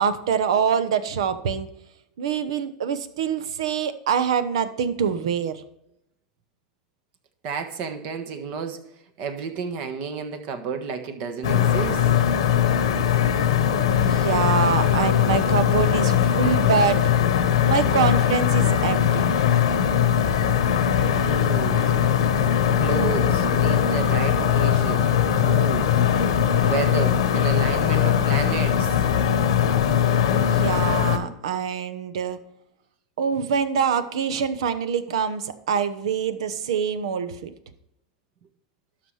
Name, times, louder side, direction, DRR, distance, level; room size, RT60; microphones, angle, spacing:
voice 1, 0.0-1.7 2.2-5.6 13.9-17.1 17.7-19.3 30.4-32.4 33.2-37.5, right 7 dB, 85° right, 0.9 m, -25 dB
voice 2, 7.4-8.8 9.2-12.1 21.0-22.1 22.8-25.1 25.4-25.9 26.7-29.0, right 5 dB, 55° right, 1.4 m, -31 dB
sound 1, 11.4-31.2, left 9 dB, 85° left, 1.0 m, -20 dB
12.5 x 5.9 x 3.3 m
supercardioid pair, 120°, 3 cm